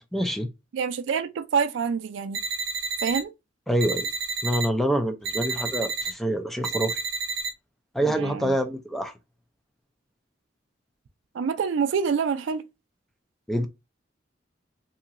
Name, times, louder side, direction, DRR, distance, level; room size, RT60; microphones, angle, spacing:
voice 1, 0.1-0.5 3.7-4.1 4.4-7.0 7.9-9.1 13.5-13.7, right 1 dB, ahead, 0.4 m, -26 dB
voice 2, 0.7-2.4 3.0-3.3 8.1-8.5 11.3-12.6, right 6 dB, 70° right, 0.3 m, -26 dB
sound 1, 2.3-3.2 3.8-4.7 5.2-6.1 6.6-7.5, right 4 dB, 90° right, 0.7 m, -30 dB
2.8 x 2.8 x 2.4 m
head